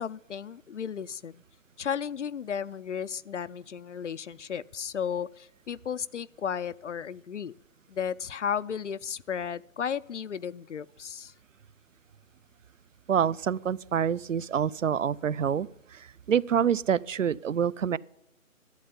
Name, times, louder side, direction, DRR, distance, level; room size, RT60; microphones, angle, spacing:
voice 1, 0.0-1.4 1.8-7.5 7.9-11.3, left 7 dB, 60° left, 0.5 m, -34 dB
voice 2, 13.1-18.0, right 8 dB, 65° right, 0.5 m, -27 dB
11.5 x 8.8 x 9.5 m
figure-of-eight pair, 155°, 43 cm